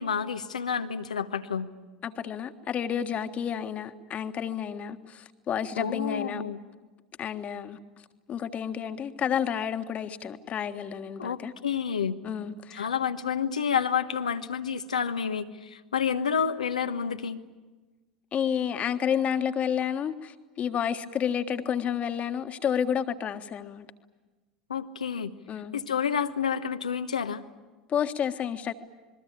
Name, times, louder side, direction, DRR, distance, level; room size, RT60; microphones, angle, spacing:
voice 1, 0.0-1.7 5.8-6.6 11.2-12.2 12.7-17.4 24.7-25.3 25.7-27.4, left 7 dB, 80° left, 1.1 m, -29 dB
voice 2, 2.0-6.4 7.2-7.8 8.3-11.5 12.2-12.9 18.3-23.8 25.5-25.8 27.9-28.7, left 8 dB, 35° left, 1.6 m, -30 dB
27.5 x 21.5 x 8.7 m
figure-of-eight pair, 75°, 4 cm